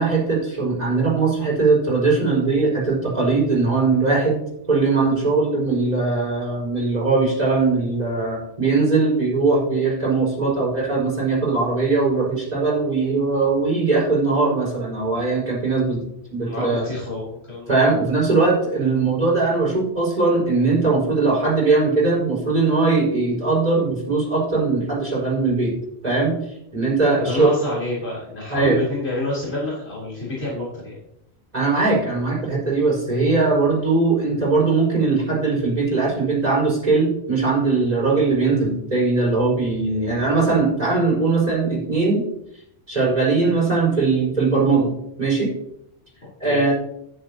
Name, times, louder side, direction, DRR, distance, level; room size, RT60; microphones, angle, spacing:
voice 1, 0.0-4.4 4.7-16.0 16.3-16.9 17.7-25.7 26.0-26.3 26.7-27.5 28.5-28.8 31.5-42.2 42.9-44.9 45.2-45.5 46.4-46.7, right 3 dB, 40° right, -5 dB, 4.8 m, -20 dB
voice 2, 16.4-17.7 27.2-31.0 46.4-46.7, left 2 dB, 80° left, -7 dB, 3.8 m, -28 dB
10.5 x 10.5 x 2.8 m, 0.78 s
omnidirectional pair, 1.1 m